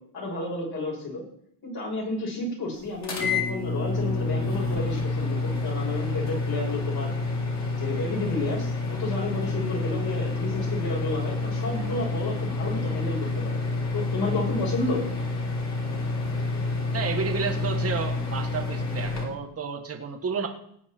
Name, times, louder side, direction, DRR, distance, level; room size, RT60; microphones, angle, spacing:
voice 1, 0.1-1.2 1.6-7.1 7.7-13.6 13.9-15.1, left 2 dB, 50° left, -2 dB, 6.5 m, -31 dB
sound 1, 3.0-19.2, left 3 dB, 35° left, 3.9 m, -28 dB
voice 2, 16.9-20.5, right 5 dB, 30° right, 4 dB, 1.6 m, -31 dB
18.5 x 8.4 x 4.5 m, 0.68 s
cardioid pair, 125°, 47 cm